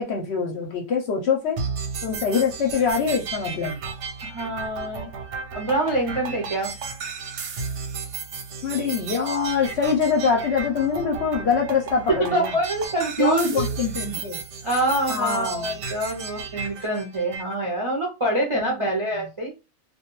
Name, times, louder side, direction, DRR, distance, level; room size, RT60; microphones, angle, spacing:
voice 1, 0.0-1.6 2.0-3.8 8.6-12.5 13.2-14.4 15.1-15.8 18.5-18.9, left 6 dB, 65° left, 1 dB, 0.7 m, -24 dB
sound 1, 1.6-17.5, right 5 dB, 65° right, 0.8 m, -34 dB
voice 2, 4.2-5.1 5.5-6.7 12.1-13.7 14.6-19.5, right 2 dB, 40° right, -2 dB, 0.4 m, -25 dB
2.2 x 2.2 x 2.9 m, 0.27 s
omnidirectional pair, 1.4 m